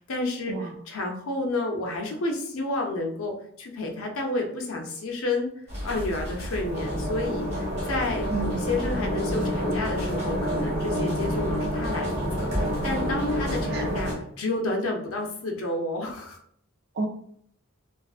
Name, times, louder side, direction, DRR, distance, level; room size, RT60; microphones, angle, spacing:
voice 1, 0.0-5.5 5.8-12.1 12.4-14.1 14.4-16.4, left 2 dB, 75° left, 1 dB, 0.5 m, -30 dB
sound 1, 5.7-14.1, equal, 35° right, 1.1 m, -28 dB
voice 2, 8.3-8.8 13.7-14.1 16.9-17.1, right 4 dB, 50° right, 4 dB, 0.4 m, -31 dB
2.4 x 2.4 x 2.3 m, 0.65 s
head